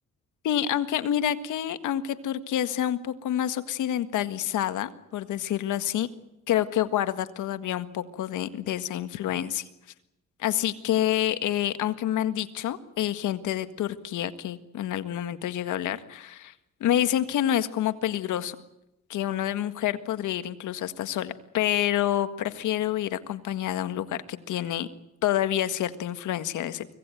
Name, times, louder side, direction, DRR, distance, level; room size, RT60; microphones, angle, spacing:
voice 1, 0.4-6.1 6.5-9.7 10.4-16.5 16.8-18.6 19.1-24.9 25.2-26.9, left 11 dB, 80° left, 10 dB, 1.8 m, -28 dB
25.0 x 18.0 x 9.2 m, 0.89 s
cardioid pair, 90°, 30 cm